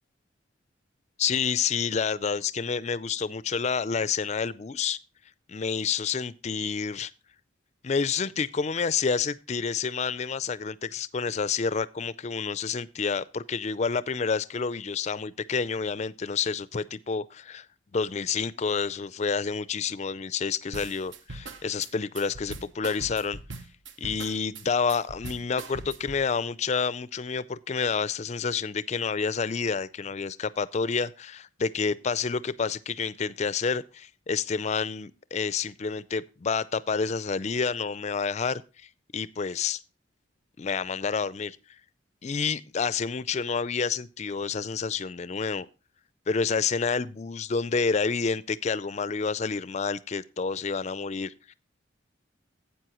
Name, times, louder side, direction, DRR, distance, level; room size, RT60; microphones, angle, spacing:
voice 1, 1.2-5.0 5.5-7.1 7.8-17.7 17.9-23.4 24.0-39.8 40.6-41.6 42.2-45.7 46.3-51.5, left 5 dB, 35° left, 0.4 m, -29 dB
sound 1, 20.7-26.2, right 3 dB, 70° right, 0.9 m, -41 dB
12.5 x 8.5 x 3.0 m
head